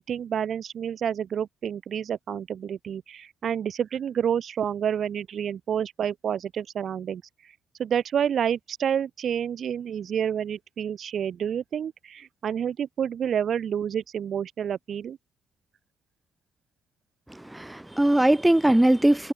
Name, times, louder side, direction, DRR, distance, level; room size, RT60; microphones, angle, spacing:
voice 1, 0.0-7.2 7.8-15.2, right 8 dB, 60° right, 4.0 m, -29 dB
voice 2, 17.3-19.3, right 1 dB, 10° right, 3.1 m, -21 dB
cardioid pair, 90°, 0 cm